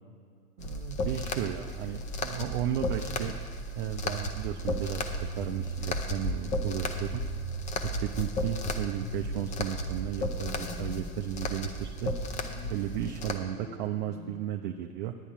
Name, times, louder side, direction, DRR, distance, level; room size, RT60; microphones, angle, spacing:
sound 1, 0.6-13.4, left 1 dB, 15° left, 0.6 m, -34 dB
voice 1, 0.6-3.4 3.8-7.2 7.8-12.1 12.7-15.1, right 11 dB, 35° right, 5 dB, 0.5 m, -34 dB
sound 2, 3.9-14.3, right 2 dB, 85° left, 3.2 m, -42 dB
10.0 x 9.8 x 4.7 m, 2.2 s
figure-of-eight pair, 100°, 44 cm